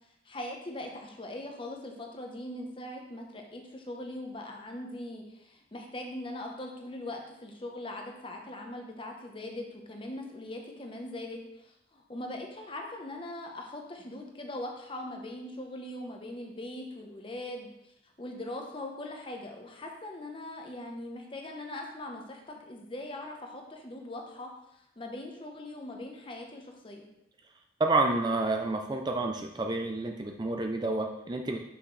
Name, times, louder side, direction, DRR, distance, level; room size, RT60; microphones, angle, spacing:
voice 1, 0.2-17.7 18.0-27.1, left 1 dB, 30° left, 2 dB, 0.9 m, -41 dB
voice 2, 27.8-31.6, right 2 dB, 25° right, 3 dB, 0.4 m, -29 dB
5.9 x 5.8 x 3.2 m, 0.84 s
head